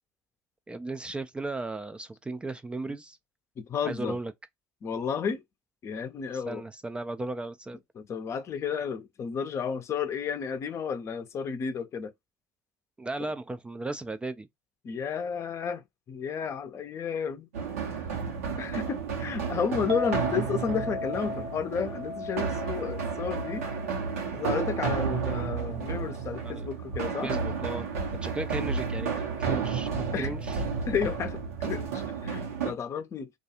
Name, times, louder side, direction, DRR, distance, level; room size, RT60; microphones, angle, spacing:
voice 1, 0.7-3.2 3.8-4.3 6.5-7.8 13.0-14.5 26.4-27.0 27.2-27.9 28.2-29.1 29.4-30.6, right 2 dB, 15° right, 0.3 m, -35 dB
voice 2, 3.6-4.2 4.8-5.4 5.8-6.6 7.9-12.1 13.2-13.3 14.8-17.5 18.6-23.7 24.3-27.3 30.1-30.3 30.9-33.3, left 6 dB, 40° left, 0.5 m, -32 dB
sound 1, 17.5-32.7, right 6 dB, 90° right, 0.9 m, -32 dB
Chink clink, 19.9-26.2, left 3 dB, 60° right, 0.7 m, -39 dB
2.4 x 2.2 x 2.8 m
hypercardioid pair, 75°, 7 cm